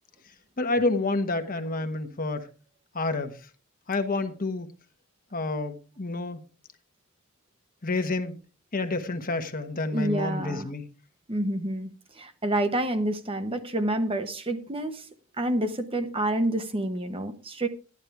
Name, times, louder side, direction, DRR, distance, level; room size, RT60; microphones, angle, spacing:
voice 1, 0.6-2.5 2.9-3.5 3.9-4.7 5.3-6.4 7.8-8.4 8.7-10.9, left 2 dB, 40° left, 1.2 m, -29 dB
voice 2, 9.9-10.7 11.3-15.0 15.4-17.7, right 1 dB, 25° right, 1.0 m, -28 dB
13.0 x 11.0 x 3.4 m
head